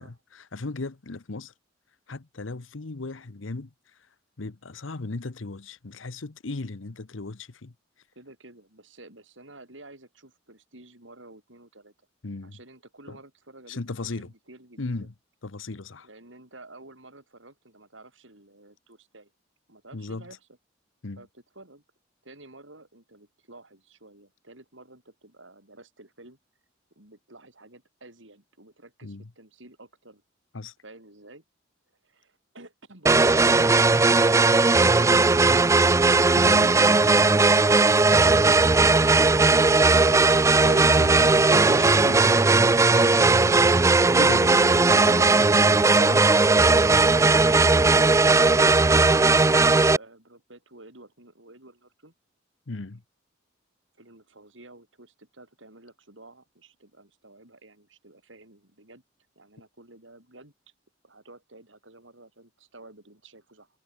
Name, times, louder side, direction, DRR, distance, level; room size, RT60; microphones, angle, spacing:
voice 1, 0.0-1.5 2.1-3.7 4.4-7.7 12.2-12.6 13.1-13.2 13.7-14.3 14.8-15.1 15.4-16.1 19.9-20.3 21.0-21.3 29.0-29.3 30.5-30.7 36.4-36.8 39.0-40.0 40.6-43.8 44.1-46.8 52.7-53.0, left 3 dB, 85° left, 1.0 m, -37 dB
voice 2, 8.2-11.9 12.4-15.1 16.0-19.3 19.7-20.4 21.2-21.3 21.6-21.8 22.2-26.4 27.0-30.2 30.8-31.4 32.0-35.2 48.3-52.1 54.0-59.0 59.4-60.5 61.0-63.7, right 2 dB, 75° right, 7.4 m, -51 dB
sound 1, 33.1-50.0, right 3 dB, 15° right, 0.4 m, -18 dB
head